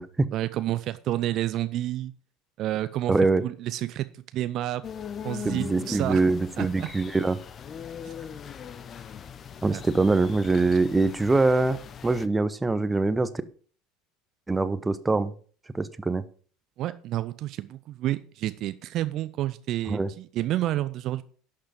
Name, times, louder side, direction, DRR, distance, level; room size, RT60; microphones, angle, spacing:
voice 1, 0.3-2.1 2.6-3.1 3.4-4.8 5.2-6.2 6.6-6.9 8.0-8.1 9.7-9.8 16.8-21.2, right 14 dB, 50° right, 14 dB, 0.5 m, -30 dB
voice 2, 3.1-3.4 5.4-7.4 9.6-13.3 14.5-15.3 15.7-16.2 19.9-20.1, right 3 dB, 15° right, 14 dB, 0.8 m, -24 dB
sound 1, 4.8-12.3, left 8 dB, 35° left, 0.7 m, -40 dB
11.5 x 6.7 x 5.1 m, 0.43 s
figure-of-eight pair, 70°, 0 cm